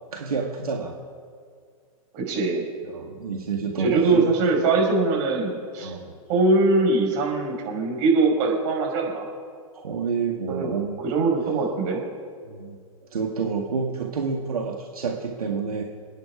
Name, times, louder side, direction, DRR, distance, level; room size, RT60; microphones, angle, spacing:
voice 1, 0.1-1.0 2.8-4.2 5.8-6.1 9.7-10.9 12.5-15.8, right 5 dB, 80° right, 1 dB, 1.8 m, -29 dB
voice 2, 2.1-2.6 3.8-5.9 6.3-9.3 10.5-10.7 11.0-12.0, right 3 dB, 45° right, 0 dB, 5.5 m, -22 dB
29.0 x 9.7 x 4.9 m, 2.1 s
hypercardioid pair, 115°, 19 cm